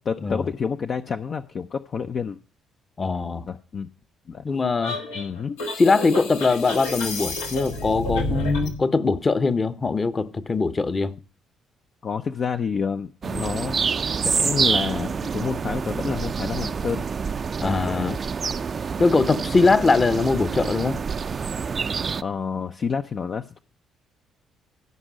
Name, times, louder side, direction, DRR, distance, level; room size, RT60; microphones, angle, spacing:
voice 1, 0.0-2.4 3.5-3.9 4.3-4.4 5.1-5.6 12.0-13.8 14.2-17.0 17.6-18.2 22.2-23.6, left 6 dB, 50° left, 0.6 m, -29 dB
voice 2, 3.0-3.5 4.4-5.0 5.7-11.1 17.6-18.2 19.0-21.0, left 3 dB, 35° left, 1.0 m, -21 dB
sound 1, 4.8-8.8, left 2 dB, 85° left, 1.6 m, -29 dB
sound 2, 13.2-22.2, right 6 dB, 45° right, 0.4 m, -27 dB
15.5 x 5.4 x 6.2 m
hypercardioid pair, 50°, 0 cm